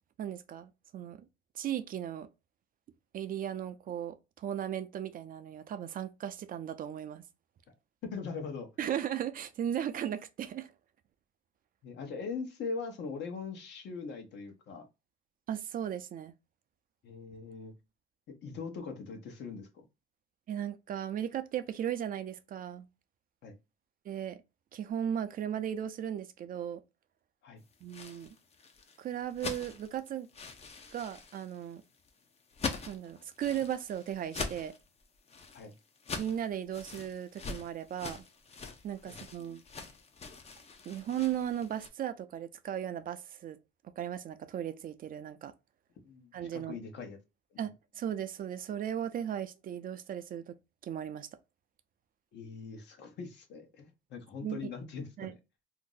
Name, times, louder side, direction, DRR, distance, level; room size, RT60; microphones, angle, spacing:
voice 1, 0.2-1.2 1.5-2.3 3.1-7.2 8.8-10.7 15.5-16.3 20.5-22.9 24.1-24.4 24.7-26.8 27.8-28.3 29.0-30.3 30.9-31.8 32.9-34.7 36.2-38.2 38.8-39.6 40.9-43.6 43.8-45.5 46.3-46.8 47.6-50.5 50.8-51.3 54.4-54.7 55.2-55.3, right 10 dB, 45° right, 0.4 m, -36 dB
voice 2, 8.0-8.7 11.8-14.9 17.0-17.7 18.3-19.8 23.4-23.5 27.4-27.6 35.5-35.7 39.0-39.1 46.0-47.2 47.5-47.7 52.3-55.4, left 5 dB, 60° left, 0.9 m, -41 dB
sound 1, 27.7-41.9, left 4 dB, 30° left, 0.6 m, -43 dB
2.6 x 2.0 x 3.7 m
cardioid pair, 105°, 20 cm